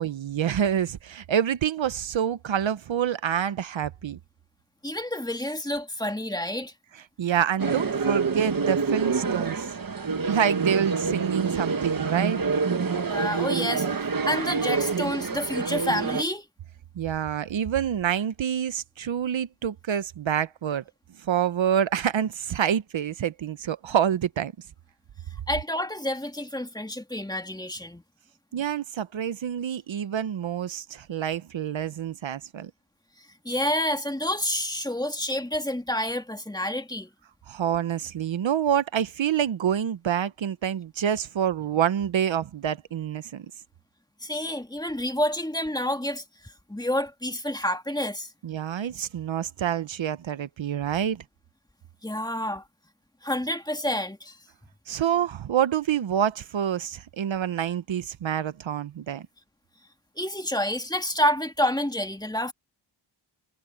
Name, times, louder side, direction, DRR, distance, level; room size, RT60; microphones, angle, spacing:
voice 1, 0.0-4.2 7.2-9.7 10.2-12.4 17.0-20.8 21.2-24.5 28.5-32.7 37.5-43.5 48.4-51.2 54.9-59.3, right 9 dB, 70° right, 0.9 m, -27 dB
voice 2, 4.8-6.7 13.0-13.9 14.3-16.5 25.5-28.0 33.4-37.1 44.2-48.3 52.0-52.6 53.2-54.4 60.2-62.5, left 1 dB, 10° left, 2.1 m, -28 dB
sound 1, 7.6-16.2, right 5 dB, 45° right, 1.6 m, -27 dB
wide cardioid pair, 95°, 47 cm